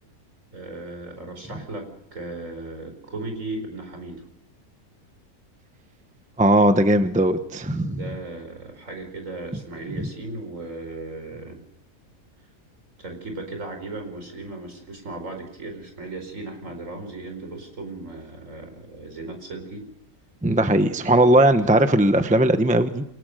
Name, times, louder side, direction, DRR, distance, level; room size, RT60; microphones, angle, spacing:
voice 1, 0.5-4.2 7.8-11.6 13.0-19.9, right 2 dB, 60° right, 5 dB, 5.1 m, -36 dB
voice 2, 6.4-8.1 10.0-10.1 20.4-23.0, right 1 dB, 5° right, 9 dB, 0.9 m, -18 dB
28.5 x 18.0 x 6.6 m, 0.84 s
omnidirectional pair, 1.5 m